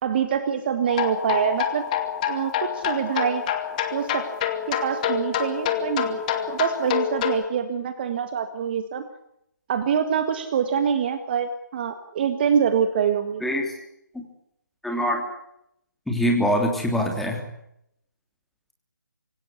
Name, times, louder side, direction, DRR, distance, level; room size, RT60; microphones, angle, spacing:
voice 1, 0.0-1.8 2.3-3.4 3.9-4.2 4.7-6.2 6.5-9.0 9.7-13.4, right 7 dB, 30° right, 9 dB, 1.8 m, -25 dB
sound 1, 0.9-7.4, left 10 dB, 25° left, 2.3 m, -27 dB
voice 2, 14.8-15.2 16.1-17.4, equal, ahead, 1 dB, 3.3 m, -23 dB
26.0 x 17.5 x 8.4 m, 0.78 s
figure-of-eight pair, 150°, 10 cm